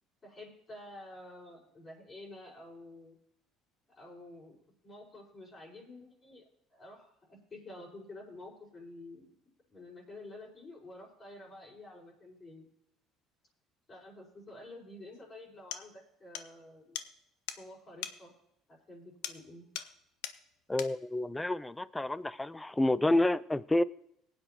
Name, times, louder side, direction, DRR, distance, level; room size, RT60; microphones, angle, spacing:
voice 1, 0.2-3.2 4.0-4.6 4.8-6.4 6.7-9.3 9.7-12.7 13.9-17.0 17.5-18.3 18.7-19.6, left 2 dB, 30° left, 4.8 m, -50 dB
sound 1, 15.1-15.2 15.7-15.9 16.3-16.5 16.9-17.1 17.5-17.6 18.0-18.2 19.2-19.5 19.7-20.0 20.2-20.4 20.8-21.0, left 11 dB, 85° left, 0.7 m, -40 dB
voice 2, 20.7-23.8, left 1 dB, 10° left, 0.4 m, -29 dB
18.0 x 9.1 x 2.9 m
supercardioid pair, 100°, 0 cm